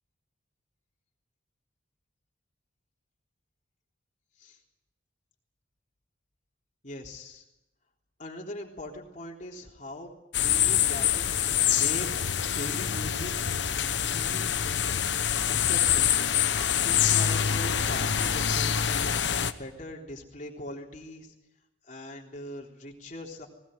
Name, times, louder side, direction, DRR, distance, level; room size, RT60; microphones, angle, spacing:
voice 1, 6.8-7.4 8.2-12.1 12.6-14.5 15.5-16.3 16.8-21.3 21.8-23.5, left 1 dB, 40° left, 0 dB, 3.6 m, -41 dB
sound 1, 10.3-19.5, left 9 dB, 65° left, 1.0 m, -25 dB
19.5 x 19.5 x 9.2 m, 0.91 s
head